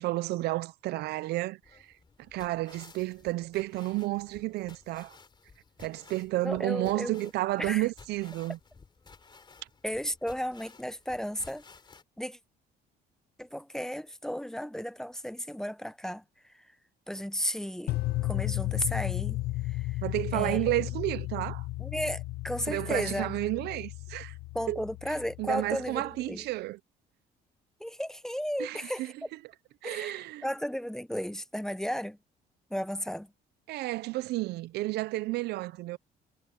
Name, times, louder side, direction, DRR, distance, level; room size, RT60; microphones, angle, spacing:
voice 1, 0.0-1.6 2.3-5.2 5.8-8.6 20.0-21.7 22.7-24.3 24.7-24.8 25.4-26.8 28.6-29.1 29.8-30.5 33.7-36.0, right 18 dB, 80° right, 0.6 m, -31 dB
sound 1, 1.6-12.0, left 4 dB, 25° left, 3.5 m, -55 dB
voice 2, 6.4-7.3 7.6-7.9 9.8-11.6 12.2-12.4 13.4-16.7 17.1-20.0 20.3-20.6 21.8-23.3 24.5-26.5 27.8-29.3 29.8-32.2 32.7-33.3, equal, 5° left, 0.8 m, -34 dB
sound 2, 17.9-26.0, left 17 dB, 75° left, 1.3 m, -34 dB
cardioid pair, 110°, 17 cm